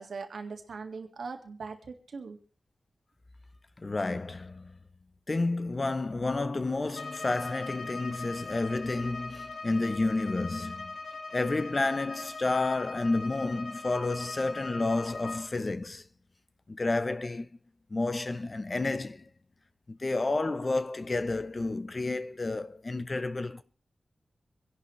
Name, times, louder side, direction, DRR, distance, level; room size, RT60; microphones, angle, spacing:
voice 1, 0.0-2.4, right 4 dB, 80° right, 1.9 m, -40 dB
voice 2, 3.8-4.8 5.3-10.9 11.3-16.0 16.7-17.5 17.9-19.3 19.9-23.6, left 2 dB, 35° left, 0.7 m, -30 dB
Bowed string instrument, 6.9-15.5, left 3 dB, 80° left, 1.9 m, -41 dB
25.0 x 11.0 x 3.2 m
wide cardioid pair, 120°, 0 cm